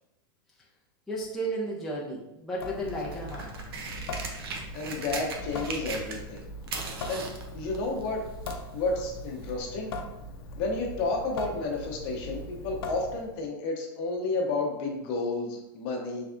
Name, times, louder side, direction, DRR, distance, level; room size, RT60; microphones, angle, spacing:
voice 1, 1.1-3.5, right 1 dB, ahead, -6 dB, 0.5 m, -33 dB
Water tap faucet / Sink (filling or washing) / Drip, 2.5-13.5, left 1 dB, 85° left, 0.5 m, -40 dB
sound 1, 2.8-6.4 6.6-8.7 9.5-9.6, right 4 dB, 85° right, 0.7 m, -38 dB
voice 2, 4.7-6.4 7.1-7.2 7.5-8.2 8.7-9.9 10.6-16.3, left 3 dB, 40° left, 1 dB, 0.7 m, -31 dB
3.4 x 3.3 x 2.5 m, 0.90 s
supercardioid pair, 155°, 12 cm